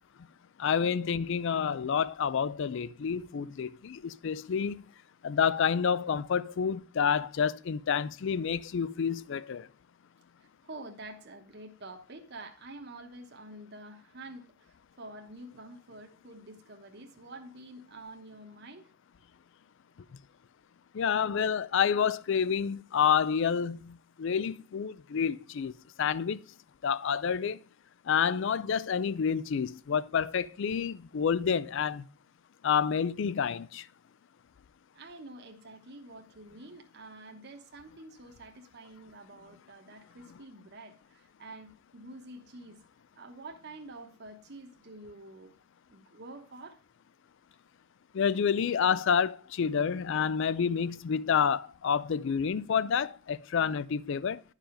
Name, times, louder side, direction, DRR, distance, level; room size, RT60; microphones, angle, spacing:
voice 1, 0.6-4.8 5.2-9.7 20.9-25.7 26.0-26.4 26.8-27.6 28.1-32.0 32.6-33.8 48.1-54.4, left 7 dB, 65° left, 0.4 m, -28 dB
voice 2, 10.6-14.5 15.0-18.9 34.9-42.8 43.2-45.5 45.9-46.8, right 2 dB, 55° right, 1.1 m, -47 dB
10.5 x 4.9 x 5.0 m
head